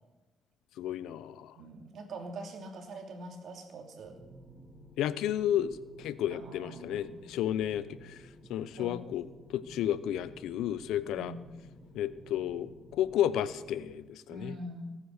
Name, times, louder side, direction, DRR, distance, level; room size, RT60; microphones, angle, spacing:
voice 1, 0.8-1.5 5.0-8.2 8.5-9.2 9.5-11.3 11.9-14.5, left 11 dB, 90° left, 16 dB, 0.6 m, -32 dB
voice 2, 1.6-4.2 6.3-7.3 8.8-9.1 11.0-11.4 14.3-15.0, right 1 dB, 65° right, 3 dB, 2.8 m, -43 dB
sound 1, 4.0-14.0, right 1 dB, 20° left, 2.7 m, -54 dB
17.5 x 9.5 x 6.6 m, 1.2 s
cardioid pair, 90°, 0 cm